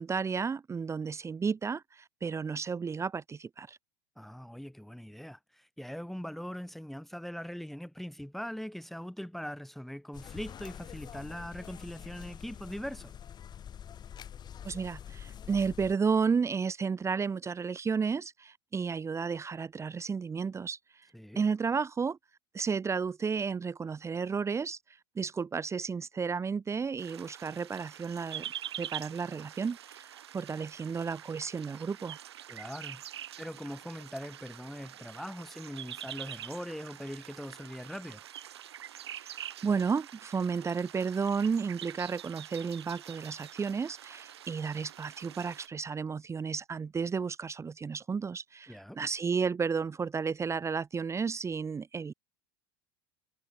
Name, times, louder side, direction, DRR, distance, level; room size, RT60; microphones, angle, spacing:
voice 1, 0.0-3.8 14.6-21.1 21.3-22.2 22.5-24.8 25.1-28.5 28.8-32.2 39.2-52.1, right 5 dB, 20° right, 1.6 m, -32 dB
voice 2, 4.2-13.1 21.1-21.4 32.5-33.0 33.4-38.2 48.7-49.0, equal, ahead, 2.0 m, -41 dB
sound 1, 10.1-15.9, left 9 dB, 30° left, 1.8 m, -46 dB
sound 2, 27.0-45.7, right 11 dB, 75° right, 1.3 m, -45 dB
figure-of-eight pair, 80°, 14 cm